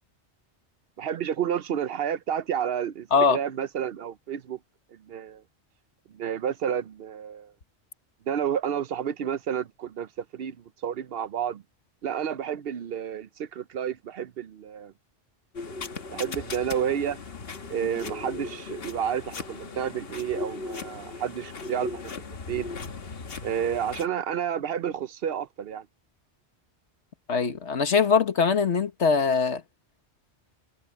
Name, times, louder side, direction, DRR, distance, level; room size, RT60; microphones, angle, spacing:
voice 1, 1.0-4.6 4.9-5.4 6.1-7.5 8.3-11.6 12.0-14.9 16.1-17.2 17.7-22.7 23.4-25.9, right 8 dB, 65° right, 0.8 m, -30 dB
sound 1, 15.5-24.1, left 3 dB, 60° left, 1.4 m, -38 dB
voice 2, 27.3-29.6, left 5 dB, 85° left, 1.7 m, -22 dB
omnidirectional pair, 1.1 m